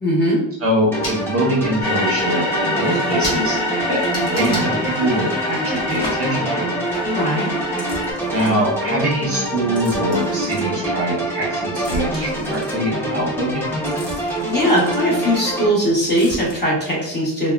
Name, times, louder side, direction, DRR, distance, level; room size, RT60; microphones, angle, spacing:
voice 1, 0.0-0.4 7.1-7.5 14.2-17.5, equal, 25° left, -5 dB, 0.9 m, -19 dB
voice 2, 0.6-6.7 8.3-13.6, right 1 dB, 30° right, -3 dB, 0.6 m, -23 dB
sound 1, 0.9-15.7, right 1 dB, 5° left, 0.4 m, -25 dB
sound 2, 1.0-1.2 2.1-2.2 2.5-2.6 2.8-3.0 3.2-3.4 4.0-4.7 5.8-6.3 7.7-8.8 9.7-11.1 11.4-15.7 16.0-16.6, left 1 dB, 60° left, 1.2 m, -33 dB
sound 3, 1.8-8.1, left 2 dB, 85° left, 0.9 m, -26 dB
3.4 x 2.0 x 2.2 m, 0.79 s
wide cardioid pair, 175°, 44 cm